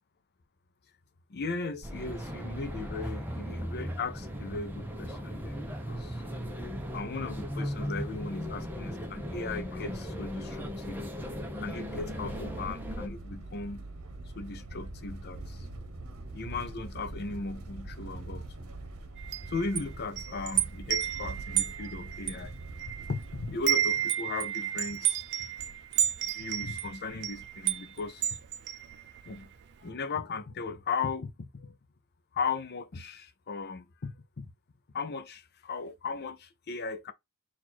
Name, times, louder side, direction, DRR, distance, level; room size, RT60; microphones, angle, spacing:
voice 1, 1.3-6.2 6.9-11.0 11.6-13.9 14.3-15.7 16.3-18.5 19.5-22.5 23.1-25.5 26.2-28.4 29.3-29.5 29.8-31.8 32.3-34.5 34.9-37.1, left 4 dB, 45° left, 0.6 m, -37 dB
sound 1, 1.8-13.1, equal, 10° right, 0.7 m, -37 dB
sound 2, 11.7-23.6, right 2 dB, 70° right, 0.9 m, -43 dB
Wind chime, 19.2-23.2 23.5-29.4, right 11 dB, 50° right, 0.4 m, -32 dB
4.3 x 2.5 x 4.3 m
head